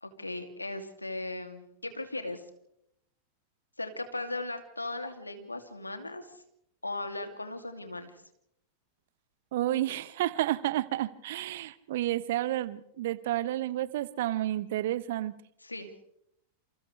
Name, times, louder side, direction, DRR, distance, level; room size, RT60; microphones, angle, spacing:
voice 1, 0.0-2.4 3.8-6.4 6.8-8.2 15.6-15.9, left 2 dB, 85° left, 6 dB, 2.8 m, -37 dB
voice 2, 9.5-15.3, right 14 dB, 55° right, 18 dB, 1.0 m, -30 dB
28.5 x 28.0 x 3.4 m, 0.77 s
figure-of-eight pair, 90°, 0 cm